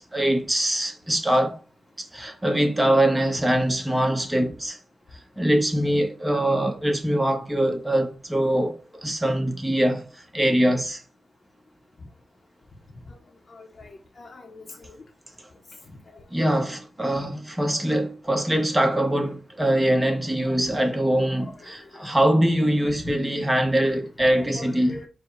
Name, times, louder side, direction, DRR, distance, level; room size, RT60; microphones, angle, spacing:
voice 1, 0.0-1.6 2.0-4.8 5.1-11.0 16.3-25.0, right 1 dB, 15° right, 1.1 m, -23 dB
voice 2, 13.5-15.0 15.9-16.2 20.4-20.8 21.2-22.1 23.0-23.1 23.8-23.9 24.3-25.1, left 3 dB, 50° left, 0.8 m, -43 dB
4.4 x 2.3 x 4.6 m
cardioid pair, 70°, 0 cm